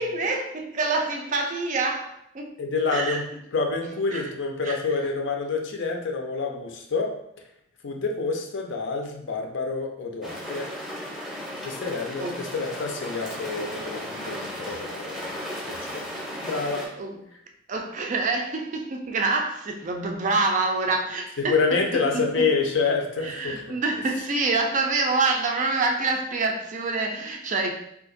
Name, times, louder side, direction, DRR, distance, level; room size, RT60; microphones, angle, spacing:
voice 1, 0.0-2.5 2.9-3.2 4.1-4.3 4.6-4.8 12.2-12.4 17.0-17.2 17.7-22.5 23.2-27.7, right 3 dB, 35° right, 0.4 m, -26 dB
voice 2, 2.6-3.3 3.5-7.1 7.8-10.7 11.6-15.3 15.6-16.1 16.4-16.9 21.4-23.7, left 4 dB, 60° left, 0.5 m, -27 dB
sound 1, 10.2-16.9, equal, ahead, 0.7 m, -35 dB
2.8 x 2.5 x 3.7 m
head